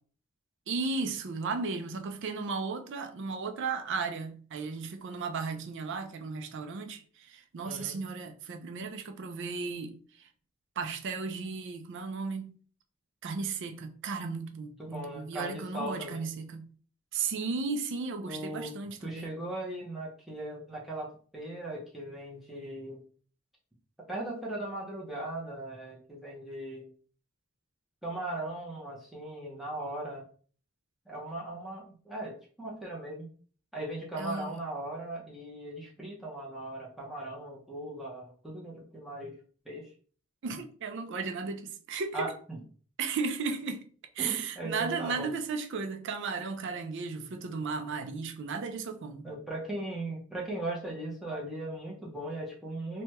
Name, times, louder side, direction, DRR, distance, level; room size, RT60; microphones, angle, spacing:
voice 1, 0.7-10.3 10.8-12.5 13.2-16.7 17.1-19.3 34.2-34.5 40.4-42.3 43.0-43.9 44.1-49.3, right 4 dB, 60° right, 0.4 m, -35 dB
voice 2, 7.6-8.0 14.8-16.3 18.3-18.7 19.0-23.0 24.1-26.9 28.0-30.2 31.1-33.3 33.7-39.3 39.6-39.9 42.1-42.6 44.2-45.3 49.2-53.0, right 1 dB, ahead, 0.7 m, -38 dB
3.2 x 2.2 x 2.9 m
head